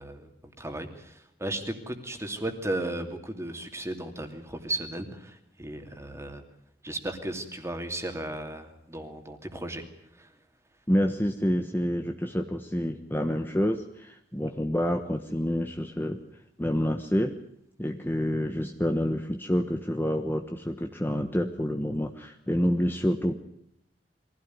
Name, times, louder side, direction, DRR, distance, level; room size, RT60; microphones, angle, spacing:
voice 1, 0.0-6.4 6.8-9.9 10.2-10.3, right 1 dB, 15° right, 6 dB, 2.7 m, -35 dB
voice 2, 10.9-16.2 16.6-17.3 17.8-23.4, equal, 10° left, 5 dB, 1.2 m, -28 dB
23.0 x 16.5 x 9.5 m, 0.74 s
head